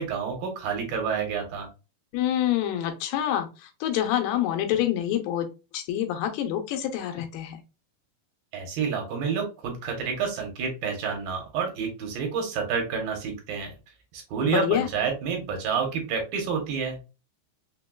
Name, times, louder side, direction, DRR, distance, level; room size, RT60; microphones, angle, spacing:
voice 1, 0.0-1.7 8.5-13.7 14.1-17.1, right 6 dB, 70° right, 2 dB, 2.5 m, -29 dB
voice 2, 2.1-5.5 5.7-7.6 14.5-14.9, left 11 dB, 85° left, 6 dB, 2.7 m, -26 dB
6.0 x 2.2 x 2.2 m, 0.30 s
omnidirectional pair, 4.5 m